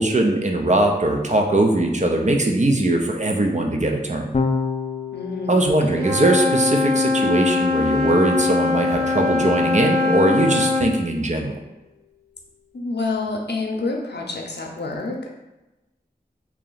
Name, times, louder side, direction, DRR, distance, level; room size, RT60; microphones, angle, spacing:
voice 1, 0.0-4.3 5.5-11.5, right 1 dB, 45° right, 2 dB, 0.6 m, -20 dB
Electric guitar / Bass guitar, 4.3-10.7, left 4 dB, 40° left, 0.4 m, -32 dB
voice 2, 5.1-6.1 12.7-15.3, left 3 dB, 75° left, 0 dB, 0.7 m, -28 dB
Wind instrument woodwind instrument, 5.9-10.9, left 3 dB, 65° right, 1.3 m, -21 dB
3.0 x 2.9 x 3.9 m, 1.0 s
wide cardioid pair, 40°, 17 cm